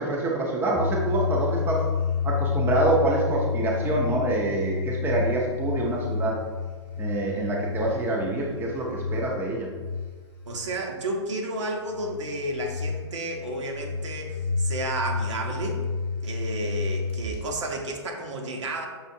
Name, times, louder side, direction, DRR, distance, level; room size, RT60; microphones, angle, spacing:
voice 1, 0.0-1.9 2.2-6.4 7.0-9.7, right 2 dB, 15° right, -2 dB, 0.5 m, -26 dB
sound 1, 0.7-10.7 11.9-17.5, left 5 dB, 15° left, 0.8 m, -30 dB
voice 2, 10.5-15.8 16.2-18.9, right 1 dB, 75° right, 1 dB, 0.9 m, -31 dB
5.7 x 2.4 x 2.7 m, 1.4 s
hypercardioid pair, 135°, 15 cm